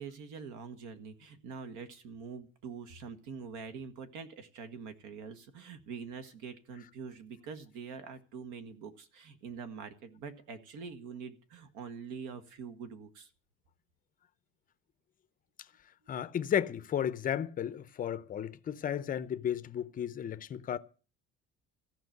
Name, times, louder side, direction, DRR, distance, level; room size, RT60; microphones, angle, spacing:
voice 1, 0.0-13.3, right 6 dB, 70° right, 1.8 m, -45 dB
voice 2, 16.1-20.8, left 9 dB, 25° left, 0.6 m, -33 dB
14.5 x 6.0 x 9.2 m
cardioid pair, 170°, 31 cm